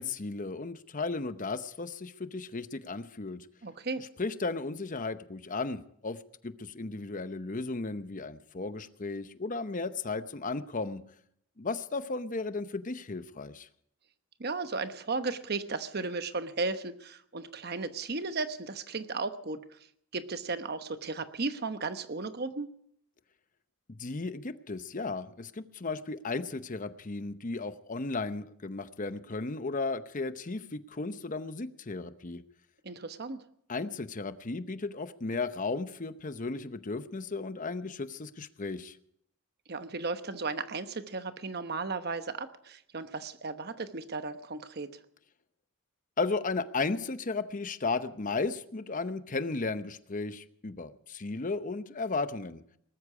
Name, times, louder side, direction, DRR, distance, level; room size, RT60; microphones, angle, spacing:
voice 1, 0.0-3.4 4.0-6.2 6.4-11.0 11.6-13.7 23.9-32.4 33.7-39.0 46.2-52.6, left 3 dB, 40° left, 12 dB, 0.8 m, -35 dB
voice 2, 3.6-4.0 14.4-19.8 20.1-22.7 32.8-33.4 39.7-45.0, right 3 dB, 50° right, 10 dB, 1.0 m, -35 dB
19.5 x 13.5 x 4.9 m, 0.69 s
head